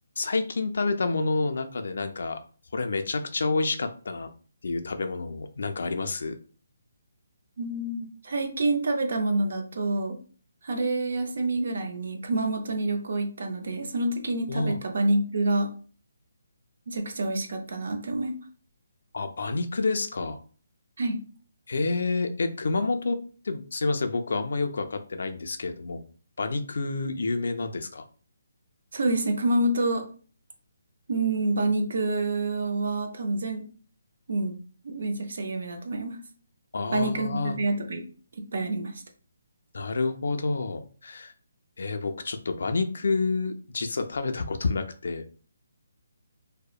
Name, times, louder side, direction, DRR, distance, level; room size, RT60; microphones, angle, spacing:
voice 1, 0.2-2.4 2.7-4.3 4.6-6.4 14.5-14.8 19.1-20.4 21.7-23.2 23.4-26.0 26.4-28.1 36.7-37.6 39.7-41.3 41.8-45.2, left 3 dB, 60° left, 7 dB, 0.3 m, -29 dB
voice 2, 7.6-10.1 10.6-15.7 16.9-18.4 21.0-21.2 28.9-30.1 31.1-33.7 34.3-34.6 34.8-36.2 36.9-38.0 38.5-38.9, right 2 dB, 55° right, 4 dB, 0.5 m, -27 dB
2.8 x 2.0 x 2.3 m, 0.40 s
hypercardioid pair, 175°, 0 cm